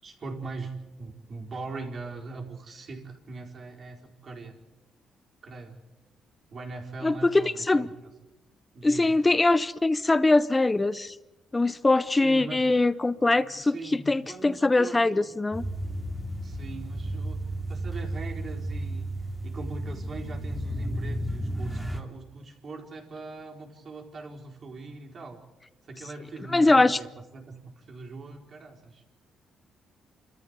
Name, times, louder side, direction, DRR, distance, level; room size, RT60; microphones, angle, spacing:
voice 1, 0.0-4.5 5.4-5.8 6.5-7.9 8.7-9.1 12.1-12.6 13.1-15.3 16.4-17.4 17.7-19.1 19.4-25.4 25.8-29.0, right 3 dB, 45° right, 4.5 m, -41 dB
voice 2, 7.0-7.9 8.8-11.2 11.5-15.6 26.5-27.0, left 2 dB, 20° left, 0.7 m, -22 dB
sound 1, 15.5-22.0, right 1 dB, ahead, 2.9 m, -33 dB
28.5 x 13.5 x 8.1 m
cardioid pair, 90°, 0 cm